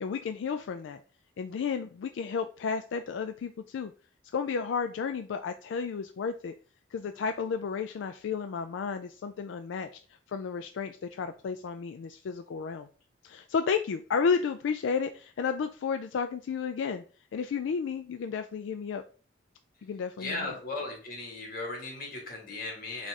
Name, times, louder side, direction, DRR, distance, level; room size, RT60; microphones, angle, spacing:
voice 1, 0.0-1.0 1.4-3.9 4.3-6.5 6.9-9.9 10.3-12.9 13.2-17.0 17.3-19.0 19.8-20.6, left 6 dB, 75° left, 8 dB, 0.3 m, -32 dB
voice 2, 20.2-23.1, left 2 dB, 50° left, 1 dB, 1.6 m, -37 dB
4.1 x 2.5 x 4.6 m, 0.39 s
head